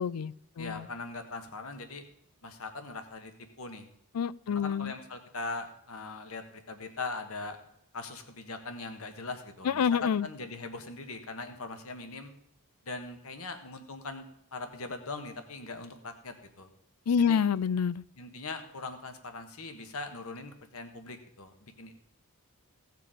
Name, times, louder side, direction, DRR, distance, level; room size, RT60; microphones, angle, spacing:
voice 1, 0.0-0.9 4.1-4.9 9.7-10.3 17.1-18.0, left 7 dB, 85° left, 20 dB, 0.4 m, -28 dB
voice 2, 0.6-2.0 2.4-3.3 3.6-3.9 4.5-7.6 7.9-12.3 12.8-14.2 14.5-16.7 17.2-17.4 18.2-21.9, left 3 dB, 70° left, 7 dB, 1.4 m, -40 dB
17.0 x 6.8 x 5.0 m, 0.74 s
head